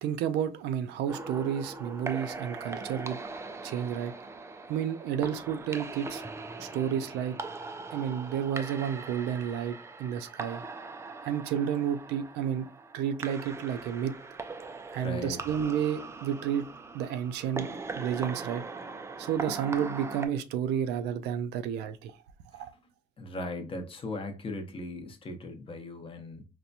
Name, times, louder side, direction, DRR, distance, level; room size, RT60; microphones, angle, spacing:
voice 1, 0.0-3.2 3.6-4.1 4.7-6.2 6.6-7.4 7.9-10.6 11.2-12.7 12.9-14.2 14.9-16.7 16.9-17.7 18.0-18.6 19.2-22.2 22.5-22.7, right 9 dB, 80° right, 0.4 m, -31 dB
sound 1, 1.1-20.3, right 3 dB, 15° right, 0.4 m, -41 dB
voice 2, 15.0-15.4 22.5-22.7 23.2-26.4, left 2 dB, 30° left, 0.8 m, -38 dB
4.2 x 2.2 x 2.6 m
cardioid pair, 110°, 17 cm